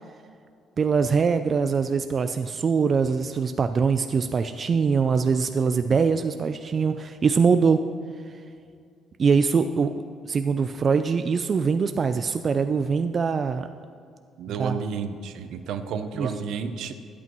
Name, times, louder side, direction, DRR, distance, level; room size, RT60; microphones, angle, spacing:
voice 1, 0.8-7.8 9.2-9.9 10.3-13.7 14.6-14.8 16.2-16.3, right 5 dB, 35° right, 9 dB, 0.3 m, -23 dB
voice 2, 5.9-6.2 14.4-16.9, right 6 dB, 70° right, 9 dB, 0.7 m, -32 dB
21.5 x 8.4 x 3.0 m, 2.3 s
cardioid pair, 140°, 0 cm